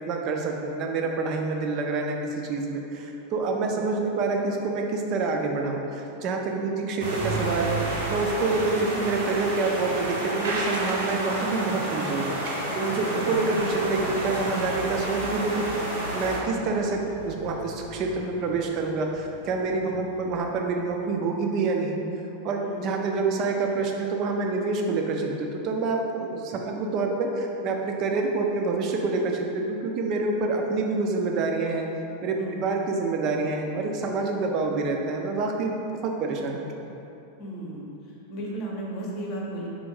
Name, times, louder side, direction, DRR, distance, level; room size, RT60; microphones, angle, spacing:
voice 1, 0.1-7.8 8.1-12.4 12.7-15.5 16.1-22.0 22.4-31.9 32.2-32.3 32.6-35.8 36.0-37.0, right 3 dB, 40° right, 2 dB, 0.4 m, -27 dB
sound 1, 7.0-16.4, right 1 dB, 60° right, 0.9 m, -30 dB
sound 2, 11.9-21.2, left 1 dB, 70° left, 0.3 m, -41 dB
voice 2, 37.4-37.9 38.3-39.7, right 1 dB, 40° left, -3 dB, 0.7 m, -35 dB
3.9 x 3.4 x 3.0 m, 2.9 s
figure-of-eight pair, 90°, 0 cm